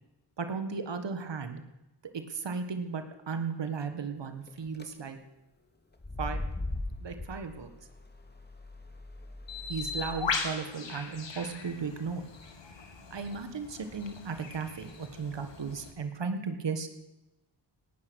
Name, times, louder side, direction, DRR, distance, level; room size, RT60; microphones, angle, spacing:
voice 1, 0.4-1.6 2.1-5.2 6.2-6.4 7.0-7.7 9.7-12.2 13.1-16.9, right 5 dB, 75° right, 7 dB, 1.7 m, -35 dB
sound 1, 4.5-4.8 5.9-10.3, left 2 dB, 25° left, 2.2 m, -39 dB
Bird, 9.5-15.9, left 5 dB, 80° left, 2.0 m, -39 dB
18.0 x 12.5 x 6.4 m, 0.96 s
cardioid pair, 65°, 43 cm